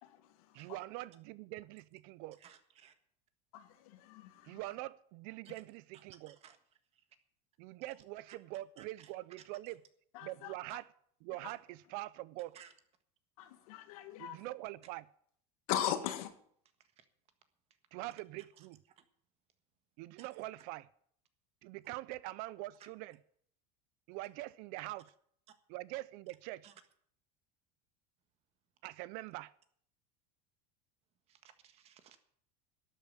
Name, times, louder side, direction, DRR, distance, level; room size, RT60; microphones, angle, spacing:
voice 1, 0.0-0.8 3.5-4.7 10.1-10.5 11.4-11.5 13.4-14.5 15.7-16.3, left 10 dB, 70° left, 1.9 m, -40 dB
voice 2, 0.5-2.4 4.4-6.4 7.6-9.8 10.2-10.9 11.2-12.6 14.2-15.0 17.9-18.8 20.0-20.9 21.6-23.2 24.1-25.1 25.7-26.7 28.8-29.5, right 18 dB, 50° right, 0.5 m, -44 dB
voice 3, 2.4-2.9 5.4-5.6 5.9-6.6 6.9-7.0 7.9-8.4 8.8-9.6 12.5-12.7 17.0-17.1 18.6-18.7 19.0-19.1 20.2-20.3 26.6-26.7 31.3-32.2, right 9 dB, 35° right, 1.6 m, -59 dB
12.0 x 8.8 x 9.0 m
supercardioid pair, 160°, 19 cm